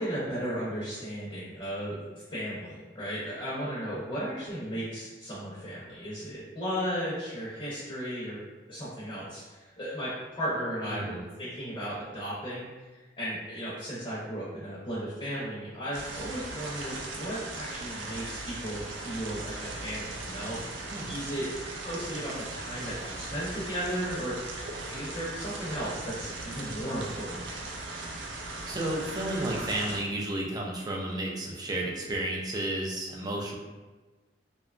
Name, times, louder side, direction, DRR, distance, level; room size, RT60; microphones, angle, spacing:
voice 1, 0.0-2.0 2.3-8.4 8.7-20.6 21.0-21.5 21.8-27.4, equal, 30° left, -9 dB, 0.6 m, -35 dB
voice 2, 10.8-11.3 20.9-21.1 28.7-33.6, right 1 dB, 20° right, -2 dB, 0.4 m, -32 dB
sound 1, 15.9-30.0, right 2 dB, 85° right, 0.4 m, -38 dB
2.8 x 2.2 x 2.4 m, 1.2 s
head